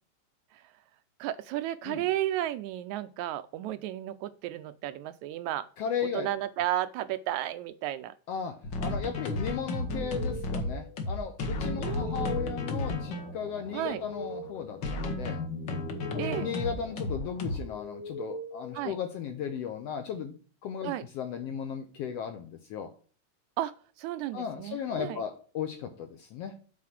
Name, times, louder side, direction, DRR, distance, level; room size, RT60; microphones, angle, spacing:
voice 1, 1.2-5.7 6.1-8.1 11.8-12.4 13.7-14.0 16.2-16.5 18.7-19.0 20.8-21.1 23.6-23.7 24.0-25.2, right 13 dB, 80° right, 12 dB, 1.8 m, -33 dB
voice 2, 5.8-6.3 8.3-8.5 8.8-15.4 16.1-20.3 20.6-22.9 24.3-26.5, left 7 dB, 75° left, 6 dB, 1.5 m, -36 dB
sound 1, 8.6-17.6, left 2 dB, 55° left, 1.3 m, -33 dB
sound 2, 9.9-19.6, left 1 dB, 30° left, 0.8 m, -44 dB
7.5 x 4.1 x 5.9 m, 0.41 s
omnidirectional pair, 3.5 m